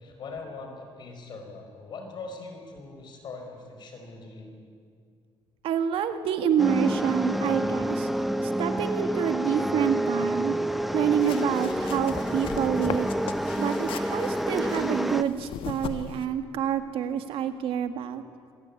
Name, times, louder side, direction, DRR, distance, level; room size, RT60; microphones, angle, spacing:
voice 1, 0.0-4.5, left 3 dB, 55° left, 4 dB, 5.1 m, -41 dB
voice 2, 5.6-8.1 8.4-10.6 10.9-13.1 13.6-18.2, right 8 dB, 80° right, 9 dB, 1.8 m, -27 dB
sound 1, 6.6-15.2, equal, ahead, 0.8 m, -28 dB
sound 2, 11.1-16.3, left 8 dB, 70° left, 1.3 m, -39 dB
25.5 x 18.0 x 8.6 m, 2.3 s
cardioid pair, 125°, 9 cm